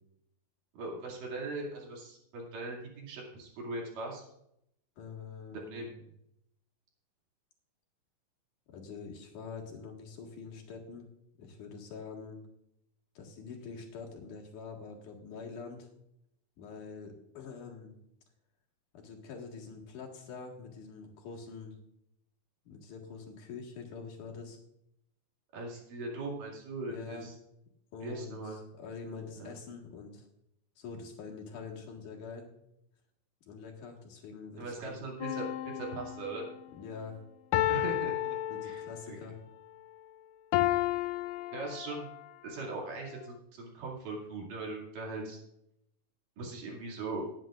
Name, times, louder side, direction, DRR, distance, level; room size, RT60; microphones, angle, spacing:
voice 1, 0.7-4.2 5.5-5.9 25.5-27.3 28.0-28.6 29.4-29.5 34.6-35.5 35.7-36.5 37.7-38.4 38.6-39.2 41.5-42.1 42.4-45.4 46.4-47.3, right 3 dB, 85° right, -1 dB, 4.1 m, -40 dB
voice 2, 5.0-5.9 8.7-11.1 11.4-12.4 13.1-15.9 16.6-18.0 18.9-21.8 22.6-24.6 26.9-27.3 27.9-30.3 30.8-32.5 33.5-35.0 36.7-37.2 38.5-39.4, left 5 dB, 70° left, 0 dB, 3.2 m, -45 dB
sound 1, 35.2-36.5 37.5-39.2 40.5-42.2 42.9-43.0, left 14 dB, 90° left, 2.2 m, -32 dB
18.5 x 9.1 x 2.5 m, 0.78 s
omnidirectional pair, 3.7 m